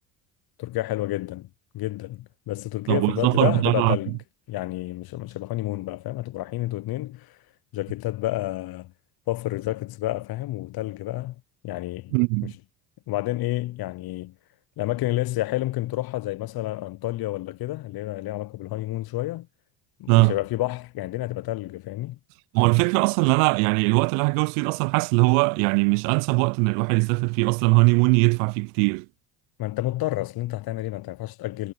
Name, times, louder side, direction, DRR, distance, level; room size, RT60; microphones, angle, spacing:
voice 1, 0.6-1.5 1.7-4.2 4.5-7.4 7.7-8.9 9.3-11.4 11.6-12.1 12.4-12.5 13.1-14.3 14.8-19.5 20.0-22.2 29.6-31.7, left 16 dB, 50° left, 0.8 m, -29 dB
voice 2, 2.9-4.0 12.1-12.5 20.1-20.3 22.5-29.1, right 35 dB, 70° right, 0.6 m, -20 dB
hypercardioid pair, 65°, 48 cm